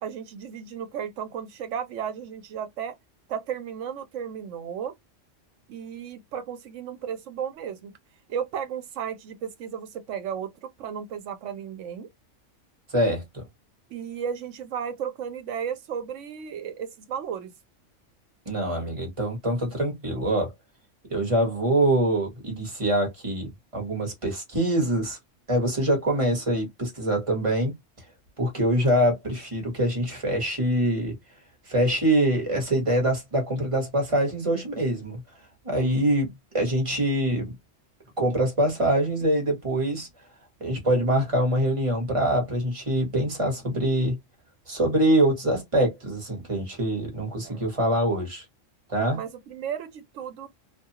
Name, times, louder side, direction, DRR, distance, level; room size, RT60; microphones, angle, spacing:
voice 1, 0.0-3.0 3.3-4.9 5.7-7.9 8.3-12.1 13.9-17.5 47.4-47.9 49.1-50.5, right 8 dB, 75° right, 1.0 m, -34 dB
voice 2, 12.9-13.4 18.4-20.5 21.1-25.2 25.5-27.7 28.4-31.1 31.7-35.2 35.6-37.5 38.2-40.1 40.6-44.2 44.7-48.4 48.9-49.2, right 1 dB, 25° right, 1.2 m, -24 dB
2.6 x 2.3 x 2.8 m
omnidirectional pair, 1.3 m